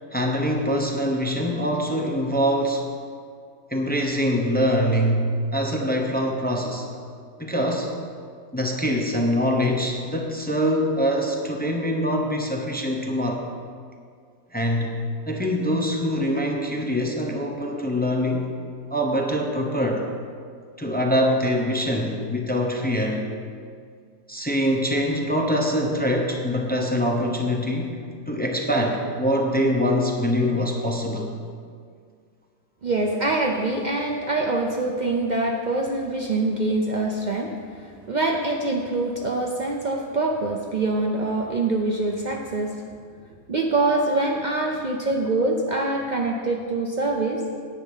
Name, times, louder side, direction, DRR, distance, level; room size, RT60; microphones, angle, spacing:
voice 1, 0.1-2.8 3.7-6.9 7.4-7.9 8.5-13.4 14.5-15.0 15.3-18.5 18.9-20.0 20.8-23.3 24.3-28.0 28.3-31.3, equal, 10° left, 0 dB, 0.6 m, -24 dB
voice 2, 32.8-42.8 43.5-47.4, right 2 dB, 85° right, 1 dB, 0.4 m, -24 dB
10.0 x 8.7 x 5.6 m, 2.1 s
omnidirectional pair, 1.8 m